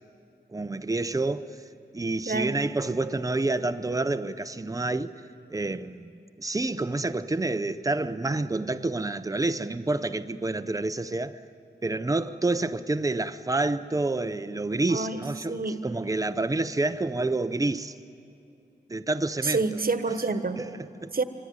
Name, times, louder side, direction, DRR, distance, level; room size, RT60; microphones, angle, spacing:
voice 1, 0.5-1.6 1.9-5.1 5.5-6.1 6.4-11.4 11.8-18.0 18.9-19.8 20.6-21.1, right 2 dB, 20° right, 0.7 m, -28 dB
voice 2, 2.3-2.6 14.9-15.2 15.5-15.9 19.4-20.6 21.1-21.2, right 3 dB, 55° right, 1.4 m, -27 dB
26.0 x 23.5 x 9.6 m
wide cardioid pair, 100°, 19 cm